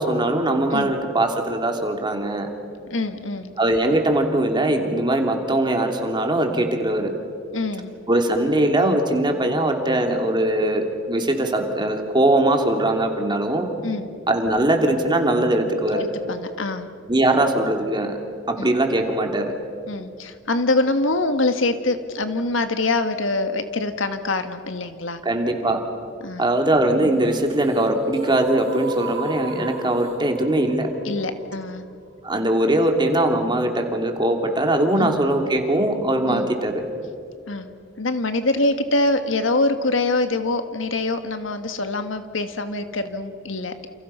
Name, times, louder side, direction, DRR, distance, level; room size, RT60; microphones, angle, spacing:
voice 1, 0.0-2.5 3.6-7.1 8.1-13.7 14.3-16.0 17.1-18.1 18.5-19.5 25.2-25.8 26.4-30.9 32.2-36.8, right 1 dB, 25° right, 3 dB, 2.9 m, -21 dB
voice 2, 2.9-3.5 7.5-7.9 13.8-14.1 15.9-16.9 18.6-18.7 19.9-25.2 26.2-26.5 31.1-31.8 35.0-35.2 36.3-36.5 37.5-37.7 38.0-43.9, left 2 dB, 80° left, 8 dB, 1.6 m, -24 dB
sound 1, 26.9-33.0, right 2 dB, 90° right, 3.4 m, -34 dB
29.0 x 29.0 x 5.7 m, 2.3 s
head